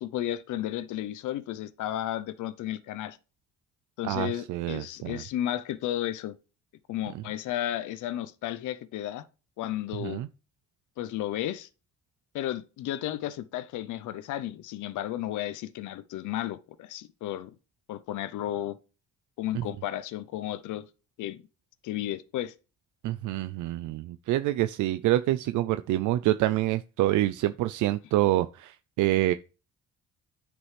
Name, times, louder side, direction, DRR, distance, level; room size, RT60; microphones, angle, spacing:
voice 1, 0.0-3.2 4.0-6.3 6.9-9.2 9.6-10.2 11.0-11.7 12.3-17.5 17.9-18.8 19.4-20.8 21.2-21.4 21.8-22.5, left 12 dB, 80° left, 0.7 m, -33 dB
voice 2, 4.0-5.2 7.1-7.2 10.0-10.3 19.5-19.6 23.0-29.3, right 15 dB, 80° right, 0.5 m, -27 dB
9.5 x 5.2 x 3.3 m
cardioid pair, 90°, 30 cm